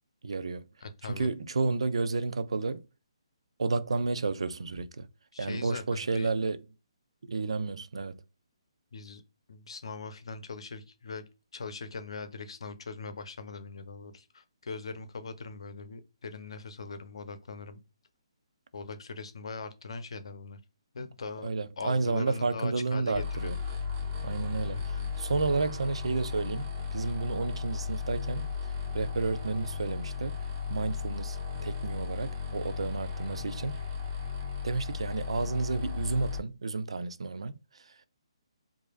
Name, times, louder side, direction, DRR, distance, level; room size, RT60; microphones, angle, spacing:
voice 1, 0.2-0.6 1.1-2.8 3.6-5.1 5.4-6.6 7.3-8.2 21.4-23.6 24.2-28.4 28.9-30.4 30.7-31.4 31.6-33.8 34.6-37.5, right 3 dB, 70° right, 0.6 m, -31 dB
voice 2, 0.8-1.3 5.3-6.3 8.9-9.2 9.5-11.2 11.5-17.8 18.7-20.6 20.9-21.5 21.8-23.5 24.7-25.1 33.4-33.5, left 4 dB, 65° left, 0.8 m, -41 dB
sound 1, 23.1-36.4, left 5 dB, 35° right, 1.5 m, -35 dB
4.9 x 2.7 x 2.4 m
figure-of-eight pair, 145°, 3 cm